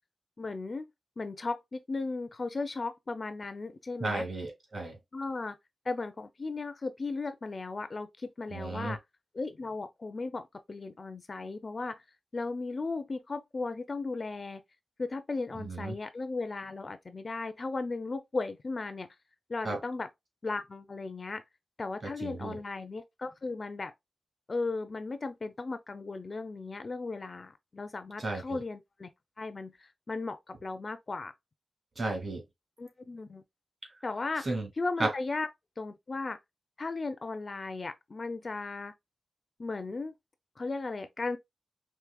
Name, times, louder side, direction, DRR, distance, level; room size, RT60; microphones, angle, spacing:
voice 1, 0.4-0.9 1.2-4.2 5.1-5.6 5.9-9.0 9.3-10.4 10.7-12.0 12.3-14.6 15.0-19.1 19.5-20.1 20.4-21.4 21.8-23.9 24.5-29.1 29.4-31.3 32.8-33.4 34.0-34.5 34.8-35.5 35.8-36.4 36.8-38.9 39.6-40.1 40.6-41.4, left 3 dB, 40° left, 0.4 m, -36 dB
voice 2, 4.0-5.0 8.5-9.0 15.6-15.9 19.6-19.8 22.0-22.6 28.2-28.6 32.0-32.4 34.4-34.7 35.0-35.1, right 2 dB, 45° right, 1.9 m, -33 dB
4.7 x 3.1 x 2.2 m
wide cardioid pair, 140°, 0 cm